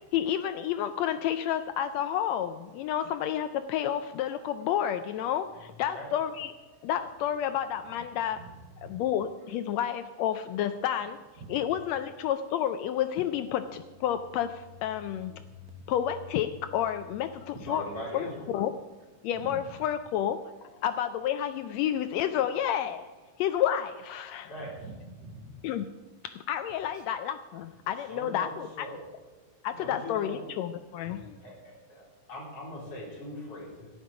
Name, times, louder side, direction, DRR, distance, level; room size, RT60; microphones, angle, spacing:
voice 1, 0.1-6.5 6.8-8.4 8.8-11.2 11.5-15.4 15.9-17.8 18.1-18.3 18.5-18.8 19.2-23.1 23.4-24.5 25.6-25.8 26.2-28.9 29.6-31.4, left 10 dB, 80° left, 10 dB, 1.6 m, -30 dB
voice 2, 8.3-9.0 11.4-11.6 15.8-15.9 19.3-19.7 24.6-25.7 26.9-27.1 31.0-31.2, right 3 dB, 65° right, 4 dB, 2.6 m, -46 dB
sound 1, 13.0-18.7, left 12 dB, 45° right, 1.3 m, -52 dB
voice 3, 17.6-18.5 24.4-24.7 27.9-29.0 29.7-30.5 31.4-33.9, left 1 dB, 50° left, -4 dB, 5.2 m, -41 dB
13.5 x 10.5 x 5.0 m, 1.4 s
omnidirectional pair, 3.5 m